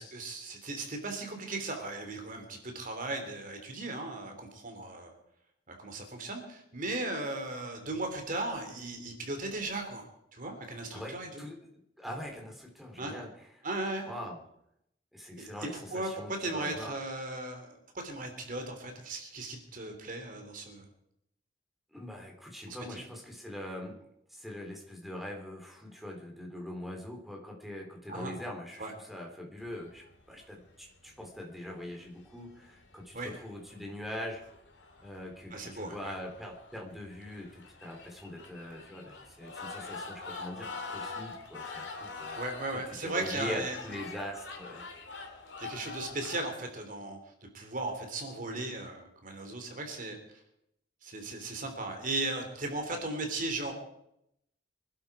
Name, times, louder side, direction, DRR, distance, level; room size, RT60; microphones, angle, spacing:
voice 1, 0.0-5.1 5.7-10.1 10.3-11.3 13.0-13.1 13.6-14.1 15.7-20.9 22.7-23.0 28.1-28.3 28.8-28.9 33.1-33.3 35.5-36.1 42.3-43.8 45.6-47.2 47.5-50.2 51.0-53.7, right 2 dB, 45° right, 4 dB, 3.1 m, -37 dB
voice 2, 10.9-11.6 12.0-13.5 14.1-14.4 15.1-16.9 21.9-34.4 35.0-42.4 43.0-44.8, left 1 dB, ahead, 0 dB, 3.3 m, -42 dB
sound 1, 29.6-46.4, left 4 dB, 70° left, 2.9 m, -45 dB
25.0 x 11.5 x 4.9 m, 0.78 s
head